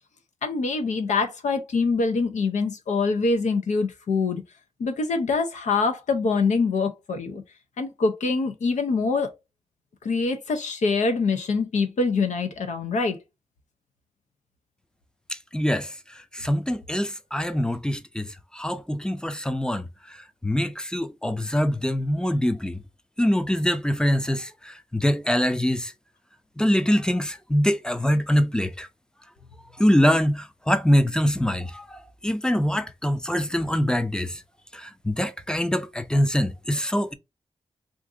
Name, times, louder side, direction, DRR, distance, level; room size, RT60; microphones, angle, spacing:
voice 1, 0.4-4.4 4.8-7.4 7.8-9.3 10.0-13.2, left 4 dB, 90° left, 0.6 m, -24 dB
voice 2, 15.5-15.9 16.3-18.3 18.5-19.9 20.4-22.8 23.2-25.9 26.6-28.9 29.8-34.4 34.7-37.1, equal, 5° left, 0.4 m, -24 dB
2.6 x 2.5 x 3.6 m
cardioid pair, 65°, 12 cm